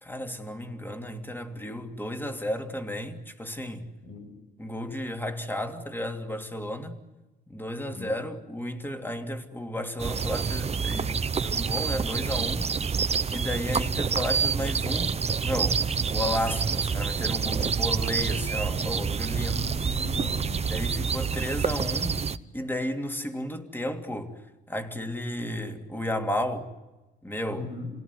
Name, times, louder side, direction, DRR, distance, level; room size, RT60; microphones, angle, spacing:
voice 1, 0.0-3.9 4.6-7.0 7.5-12.8 13.3-19.6 20.7-22.2 22.5-24.4 24.7-26.7 27.2-27.7, left 1 dB, 10° left, 2.9 m, -33 dB
sound 1, 10.0-22.4, right 6 dB, 30° right, 0.9 m, -27 dB
voice 2, 19.4-20.7 27.5-27.9, left 4 dB, 75° left, 7.2 m, -39 dB
27.5 x 18.0 x 9.8 m
cardioid pair, 90°, 20 cm